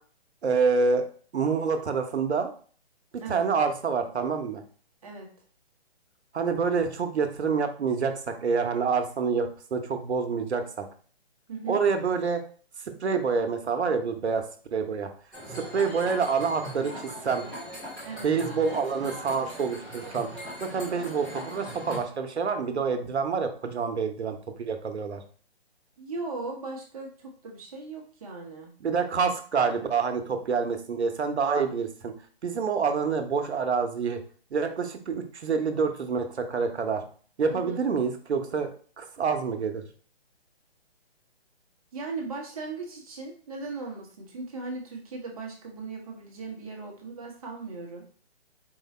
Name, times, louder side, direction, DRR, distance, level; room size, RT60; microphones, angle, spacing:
voice 1, 0.4-1.0 1.3-2.5 3.1-4.6 6.3-10.9 11.7-12.4 13.0-14.4 14.7-15.1 15.5-17.5 18.2-20.3 20.6-25.2 28.8-32.1 32.4-34.2 34.5-37.0 37.4-38.7 39.0-39.8, right 5 dB, 85° right, 6 dB, 0.8 m, -27 dB
voice 2, 11.5-11.8 18.0-18.3 26.0-28.7 37.5-37.8 41.9-48.0, right 3 dB, 35° right, 0 dB, 0.9 m, -38 dB
sound 1, 15.3-22.0, equal, ahead, 0.6 m, -40 dB
4.6 x 2.2 x 4.0 m, 0.44 s
hypercardioid pair, 160°, 32 cm